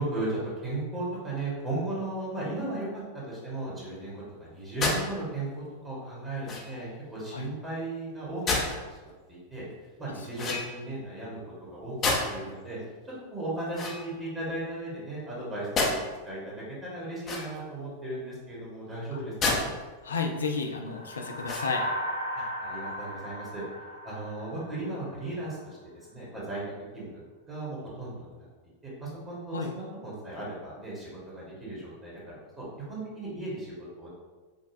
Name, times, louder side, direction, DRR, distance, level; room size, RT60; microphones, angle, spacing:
voice 1, 0.0-9.6 10.0-11.4 11.7-12.8 13.3-15.9 16.2-19.7 22.3-23.6 24.0-25.8 26.1-26.6 26.9-28.5 28.8-34.1, right 2 dB, 20° right, -7 dB, 1.3 m, -36 dB
sound 1, 4.8-5.0 6.4-6.9 8.5-8.8 10.3-11.0 12.0-12.5 13.7-14.6 15.8-16.0 17.2-17.8 19.4-19.6 20.1-20.2 21.4-21.9, left 3 dB, 25° left, 0.7 m, -29 dB
voice 2, 20.0-21.9 29.5-29.7, left 4 dB, 70° left, 3 dB, 0.4 m, -31 dB
sound 2, 20.8-25.3, equal, 85° right, 0.6 m, -36 dB
5.2 x 2.3 x 2.6 m, 1.3 s
figure-of-eight pair, 90°, 0 cm